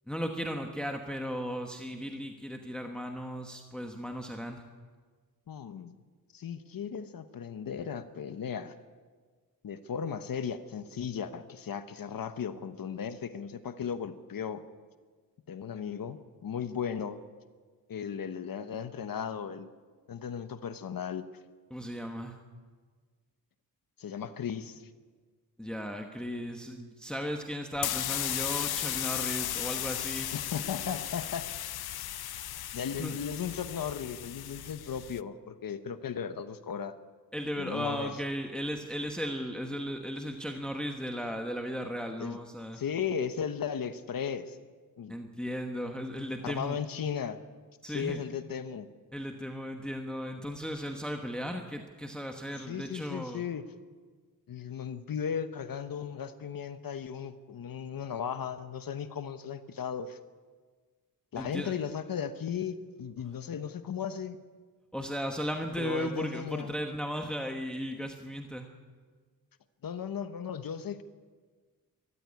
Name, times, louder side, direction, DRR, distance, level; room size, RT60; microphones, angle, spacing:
voice 1, 0.1-4.6 21.7-22.4 25.6-30.3 33.0-33.2 37.3-42.8 45.1-46.8 47.8-48.2 49.1-53.4 61.4-61.7 64.9-68.7, equal, ahead, 3 dB, 1.2 m, -36 dB
voice 2, 5.5-6.0 6.3-8.7 9.6-14.6 15.5-17.2 17.9-19.7 20.1-21.2 24.0-24.9 30.3-31.5 32.7-36.9 37.6-38.1 42.2-42.4 42.7-44.6 45.0-45.1 46.4-47.4 47.9-48.9 52.6-53.6 54.5-60.2 61.3-64.4 65.8-66.8 69.8-71.0, left 7 dB, 65° left, 11 dB, 1.1 m, -36 dB
sound 1, 27.7-35.2, left 12 dB, 90° left, 0.6 m, -35 dB
23.5 x 14.0 x 9.7 m, 1.5 s
wide cardioid pair, 175°, 36 cm